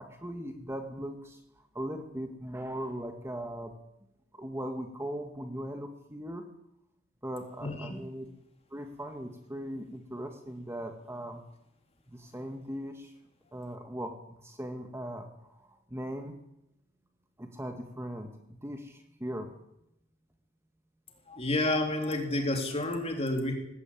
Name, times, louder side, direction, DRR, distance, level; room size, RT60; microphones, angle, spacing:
voice 1, 0.0-1.4 1.8-3.7 4.4-6.4 7.2-8.3 8.7-11.4 12.1-13.1 13.5-15.3 15.9-16.4 17.4-19.5, equal, 15° right, 5 dB, 1.8 m, -39 dB
voice 2, 7.6-8.0 21.3-23.5, left 1 dB, 30° left, 4 dB, 3.5 m, -30 dB
18.0 x 17.0 x 8.7 m, 0.82 s
head